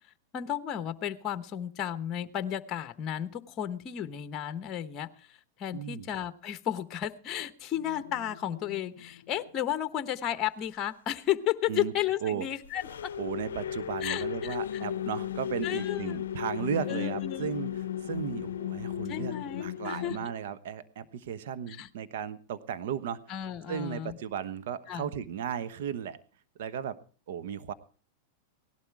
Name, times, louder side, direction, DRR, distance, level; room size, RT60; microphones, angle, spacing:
voice 1, 0.3-13.1 14.0-14.8 15.6-16.2 16.9-17.6 19.0-20.2 21.7-21.9 23.3-24.2 24.9-25.1, left 11 dB, 35° left, 12 dB, 1.0 m, -33 dB
voice 2, 5.7-6.1 11.7-11.9 12.2-12.4 13.2-23.2 23.7-26.2 26.6-27.0 27.3-27.7, right 8 dB, 70° right, 12 dB, 1.1 m, -35 dB
sound 1, 7.8-9.6 12.6-20.3, left 10 dB, 85° left, 0.6 m, -36 dB
17.5 x 12.0 x 4.7 m, 0.39 s
hypercardioid pair, 115°, 0 cm